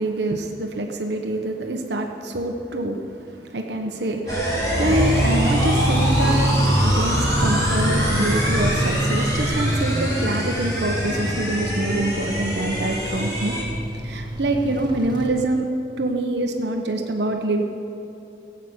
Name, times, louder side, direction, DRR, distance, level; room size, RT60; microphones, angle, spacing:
voice 1, 0.0-3.0 3.5-6.5 6.7-13.6 14.0-15.7 16.0-17.6, right 1 dB, 70° right, 3 dB, 1.1 m, -25 dB
sound 1, 4.3-13.6, equal, 20° left, 2.9 m, -25 dB
sound 2, 4.9-15.3, right 1 dB, 25° right, 1.7 m, -25 dB
17.0 x 8.3 x 8.1 m, 2.9 s
head